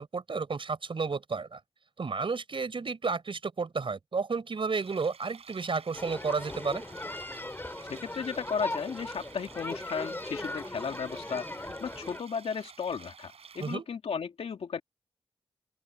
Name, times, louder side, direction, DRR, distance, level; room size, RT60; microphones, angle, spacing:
voice 1, 0.0-1.6 2.0-6.8 13.6-13.8, right 4 dB, 60° right, 4.3 m, -32 dB
sound 1, 4.7-13.8, right 6 dB, 75° right, 5.3 m, -51 dB
sound 2, 5.9-12.2, left 2 dB, 20° left, 2.4 m, -39 dB
voice 2, 7.9-14.8, left 6 dB, 75° left, 2.4 m, -35 dB
open air
cardioid pair, 45°, 10 cm